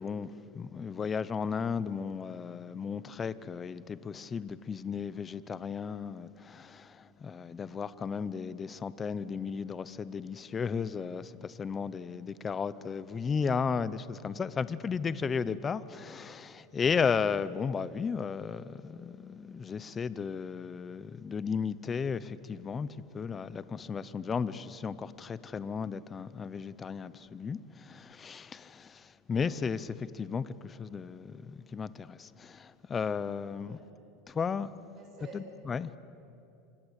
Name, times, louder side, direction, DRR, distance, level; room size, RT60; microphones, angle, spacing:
voice 1, 0.0-22.9 23.1-33.8 34.3-34.7 35.3-35.9, left 6 dB, 20° left, 0.8 m, -34 dB
voice 2, 15.2-15.6 33.6-33.8 34.9-35.4, right 4 dB, 40° right, 7.9 m, -50 dB
27.0 x 26.0 x 8.3 m
supercardioid pair, 150°, 0 cm